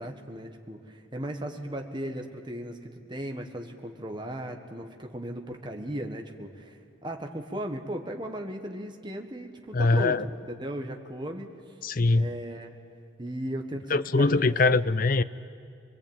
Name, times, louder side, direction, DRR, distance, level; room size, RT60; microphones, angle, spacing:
voice 1, 0.0-10.3 10.6-11.7 12.1-12.7 13.2-14.5, right 1 dB, 25° right, 4 dB, 1.4 m, -37 dB
voice 2, 9.7-10.3 11.8-12.3 13.9-15.2, left 3 dB, 45° left, 15 dB, 0.6 m, -22 dB
23.0 x 22.5 x 8.9 m, 2.3 s
head